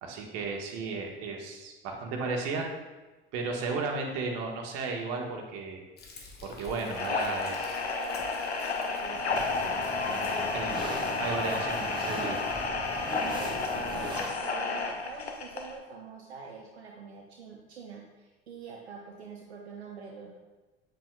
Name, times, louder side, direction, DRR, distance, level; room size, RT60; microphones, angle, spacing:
voice 1, 0.0-2.7 3.3-5.8 6.4-7.8 10.5-10.7 11.2-12.4, right 4 dB, 50° right, 1 dB, 1.4 m, -34 dB
Frying (food), 6.0-11.0, left 4 dB, 30° left, 1.4 m, -51 dB
sound 1, 6.8-15.8, left 3 dB, 90° left, 0.7 m, -31 dB
voice 2, 7.9-11.4 11.7-11.9 12.9-20.3, right 4 dB, 80° right, 0 dB, 0.8 m, -46 dB
sound 2, 9.3-14.3, right 1 dB, 15° right, 1.7 m, -40 dB
7.8 x 7.4 x 2.3 m, 1.2 s
figure-of-eight pair, 70°, 32 cm